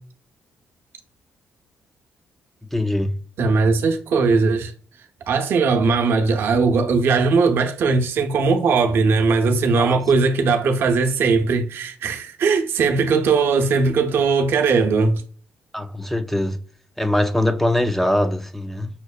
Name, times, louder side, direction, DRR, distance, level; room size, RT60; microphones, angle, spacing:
voice 1, 2.7-3.2 9.8-10.0 15.7-16.6 17.0-18.9, left 1 dB, 5° left, 0.3 m, -22 dB
voice 2, 3.4-4.7 5.3-15.2, right 4 dB, 70° right, 0.6 m, -19 dB
5.7 x 2.1 x 2.2 m
supercardioid pair, 70°, 4 cm